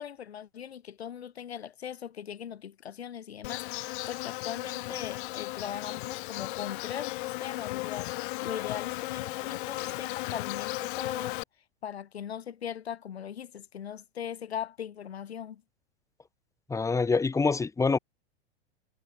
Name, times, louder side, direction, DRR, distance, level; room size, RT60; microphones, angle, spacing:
voice 1, 0.0-11.4 11.8-15.6, left 9 dB, 70° left, 2.6 m, -39 dB
Insect, 3.4-11.4, left 21 dB, 50° left, 1.9 m, -35 dB
voice 2, 16.7-18.0, left 4 dB, 10° left, 1.4 m, -25 dB
figure-of-eight pair, 95°, 32 cm